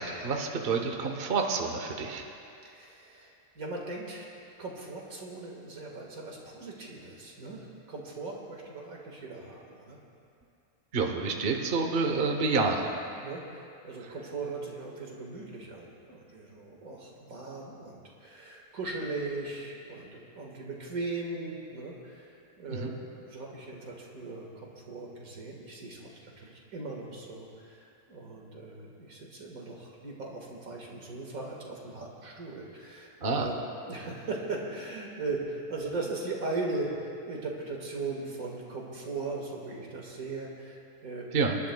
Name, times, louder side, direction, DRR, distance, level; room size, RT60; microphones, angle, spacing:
voice 1, 0.0-2.2 10.9-12.9 14.0-14.1 22.7-22.9 33.2-33.5 41.3-41.6, right 4 dB, 45° right, 3 dB, 1.1 m, -28 dB
voice 2, 2.6-4.2 4.6-10.0 11.1-11.5 13.1-22.9 23.2-26.1 26.4-33.6 33.9-41.3, right 3 dB, 80° right, -2 dB, 2.2 m, -39 dB
27.5 x 11.5 x 2.3 m, 2.6 s
omnidirectional pair, 1.5 m